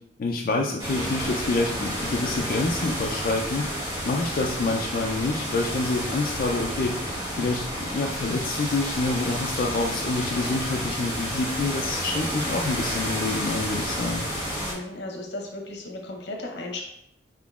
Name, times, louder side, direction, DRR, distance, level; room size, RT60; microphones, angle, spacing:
voice 1, 0.2-3.7 4.0-7.0 7.3-14.2, left 3 dB, 55° left, -1 dB, 0.3 m, -27 dB
sound 1, 0.8-14.7, equal, 20° right, 0.9 m, -30 dB
voice 2, 14.6-16.9, left 2 dB, 80° left, 1 dB, 0.8 m, -35 dB
4.9 x 3.7 x 2.3 m, 0.76 s
head